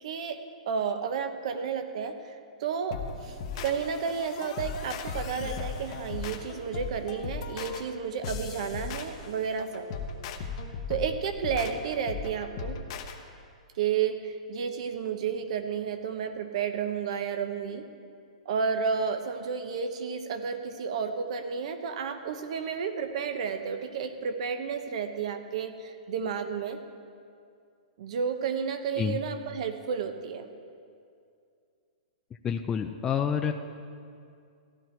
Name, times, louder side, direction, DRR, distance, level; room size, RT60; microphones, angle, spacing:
voice 1, 0.0-0.4 0.7-9.9 10.9-12.8 13.8-17.9 18.4-26.8 28.0-30.5, right 6 dB, 55° right, 8 dB, 1.0 m, -32 dB
sound 1, 2.9-13.2, left 5 dB, 45° left, 1.0 m, -37 dB
voice 2, 32.4-33.5, left 7 dB, 15° left, 5 dB, 0.4 m, -28 dB
15.0 x 11.0 x 4.5 m, 2.3 s
hypercardioid pair, 155°, 4 cm